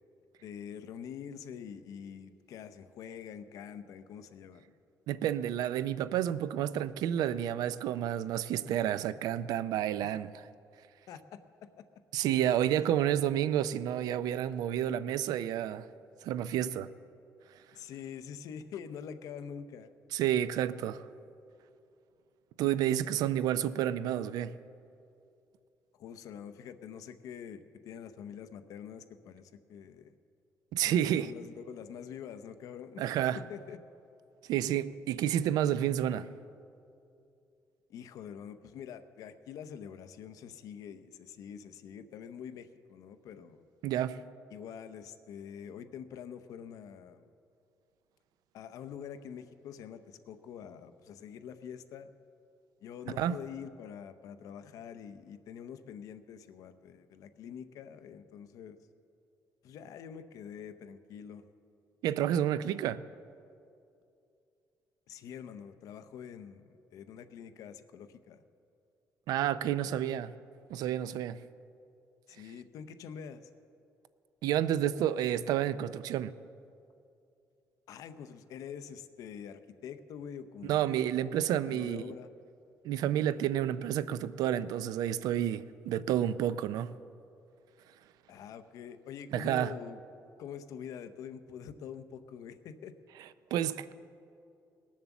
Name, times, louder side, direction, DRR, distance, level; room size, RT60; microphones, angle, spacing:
voice 1, 0.4-4.7 10.0-10.1 11.1-11.4 12.8-12.9 17.7-19.9 26.0-30.1 30.9-33.0 33.5-33.8 37.9-43.6 44.5-47.2 48.5-52.1 52.8-58.8 59.6-61.5 65.1-68.4 69.8-70.0 72.3-73.4 77.9-81.3 81.7-82.3 88.3-90.0 90.4-92.9, left 8 dB, 65° left, 0.7 m, -45 dB
voice 2, 5.1-10.3 12.1-15.9 16.2-16.9 20.1-21.0 22.6-24.5 30.7-31.3 33.0-33.4 34.5-36.3 43.8-44.2 53.2-53.4 62.0-63.0 69.3-70.3 70.7-71.4 74.4-76.3 80.7-82.0 82.8-86.9 89.3-89.7 93.5-93.9, right 11 dB, 90° right, 0.4 m, -30 dB
19.0 x 7.3 x 7.1 m
cardioid pair, 180°, 6 cm